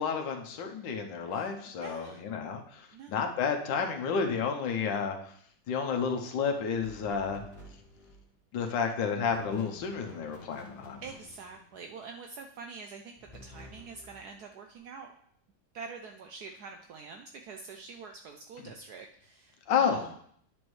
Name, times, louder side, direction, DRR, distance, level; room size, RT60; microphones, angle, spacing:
voice 1, 0.0-2.6 3.1-5.2 5.7-7.4 8.5-11.0 19.7-20.0, left 6 dB, 75° left, 4 dB, 1.5 m, -30 dB
voice 2, 1.8-2.2 2.9-3.2 11.0-15.1 15.7-20.2, right 4 dB, 70° right, 4 dB, 1.0 m, -46 dB
sound 1, 6.7-8.3 9.2-11.8 13.2-14.3, left 2 dB, 30° left, 2.0 m, -51 dB
10.5 x 6.1 x 3.2 m, 0.66 s
omnidirectional pair, 2.0 m